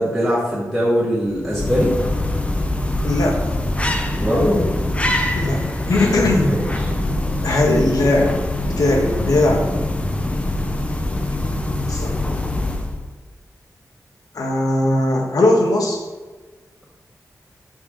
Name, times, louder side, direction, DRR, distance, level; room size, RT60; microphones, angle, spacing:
voice 1, 0.0-1.9 4.2-4.6 6.4-6.6, equal, ahead, -9 dB, 2.2 m, -20 dB
sound 1, 1.3-13.1, left 1 dB, 20° left, 0.8 m, -23 dB
voice 2, 3.0-3.4 5.3-6.6 7.4-8.3 8.7-9.7 11.9-12.2 14.3-16.0, left 2 dB, 80° left, 1 dB, 1.4 m, -19 dB
7.7 x 5.8 x 4.0 m, 1.3 s
wide cardioid pair, 120°, 6 cm